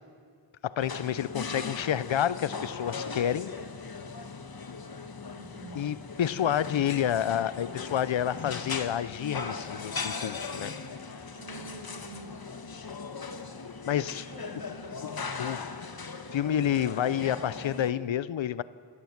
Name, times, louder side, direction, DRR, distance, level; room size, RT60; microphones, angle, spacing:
voice 1, 0.6-3.5 5.7-10.8 13.9-14.3 15.4-15.7 16.3-18.6, left 10 dB, 80° left, 17 dB, 0.6 m, -29 dB
sound 1, 0.8-17.9, left 4 dB, 50° left, 1.3 m, -39 dB
voice 2, 5.3-5.9 11.3-12.3 14.3-14.9, right 4 dB, 50° right, 0 dB, 6.1 m, -47 dB
26.0 x 17.0 x 7.2 m, 2.1 s
wide cardioid pair, 90°, 45 cm